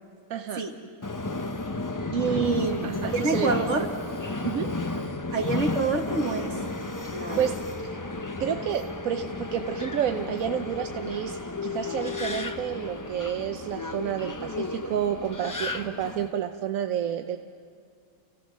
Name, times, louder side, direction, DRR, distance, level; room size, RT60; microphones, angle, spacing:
voice 1, 0.3-0.7 2.3-3.5 4.4-4.7 7.4-8.0 8.4-17.4, right 9 dB, 85° right, 6 dB, 1.1 m, -30 dB
Subway metro underground, 1.0-16.3, left 3 dB, 20° left, 0.5 m, -33 dB
voice 2, 2.1-3.9 5.3-6.6 7.1-7.5, right 4 dB, 60° right, 3 dB, 2.0 m, -27 dB
29.5 x 16.5 x 6.3 m, 2.3 s
omnidirectional pair, 1.4 m